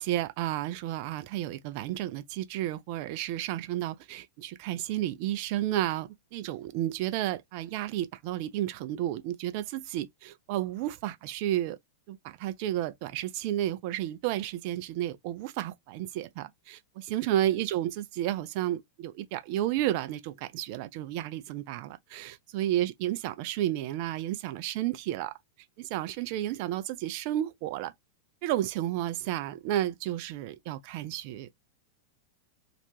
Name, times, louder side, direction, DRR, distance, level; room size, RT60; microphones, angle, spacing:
voice 1, 0.0-11.8 12.1-25.3 25.8-27.9 28.4-31.6, right 13 dB, 45° right, 0.3 m, -32 dB
2.4 x 2.1 x 2.8 m
figure-of-eight pair, 90°, 0 cm